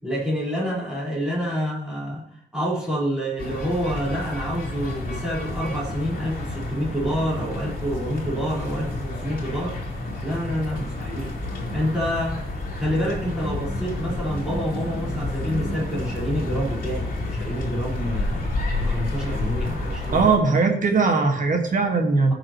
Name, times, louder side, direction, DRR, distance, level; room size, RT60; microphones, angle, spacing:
voice 1, 0.0-9.8 10.2-11.3 11.7-18.5 18.8-20.3, equal, 5° right, -7 dB, 4.6 m, -28 dB
sound 1, 3.4-20.4, left 2 dB, 50° left, 3.2 m, -30 dB
voice 2, 20.1-22.3, right 4 dB, 45° right, 3 dB, 1.8 m, -20 dB
16.0 x 6.3 x 3.1 m, 0.72 s
wide cardioid pair, 155°, 18 cm